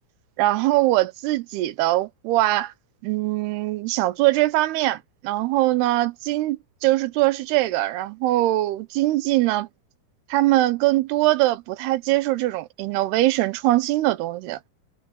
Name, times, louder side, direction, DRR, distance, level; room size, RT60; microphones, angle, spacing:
voice 1, 0.4-2.7 3.0-9.7 10.3-14.6, right 17 dB, 80° right, 2.8 m, -22 dB
omnidirectional pair, 4.7 m